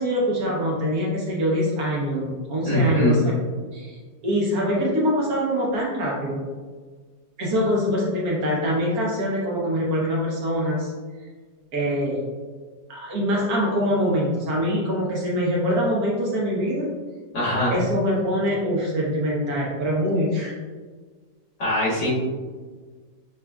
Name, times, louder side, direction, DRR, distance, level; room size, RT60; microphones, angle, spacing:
voice 1, 0.0-3.3 3.7-3.9 4.2-6.4 7.4-10.9 11.7-12.2 12.9-16.9 17.7-20.5, equal, 60° right, -3 dB, 1.1 m, -24 dB
voice 2, 2.7-3.2 17.3-17.7 21.6-22.1, equal, 70° left, -9 dB, 2.3 m, -21 dB
6.1 x 2.3 x 2.2 m, 1.5 s
omnidirectional pair, 2.0 m